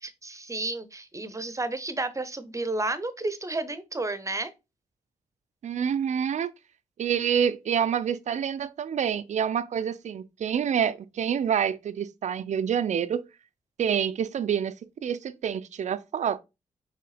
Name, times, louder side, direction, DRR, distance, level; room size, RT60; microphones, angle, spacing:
voice 1, 0.0-4.5, right 2 dB, 20° right, 0.7 m, -31 dB
voice 2, 5.6-6.5 7.0-13.3 13.8-14.7 15.0-16.4, right 8 dB, 55° right, 0.4 m, -27 dB
4.6 x 3.1 x 3.2 m
hypercardioid pair, 40°, 15 cm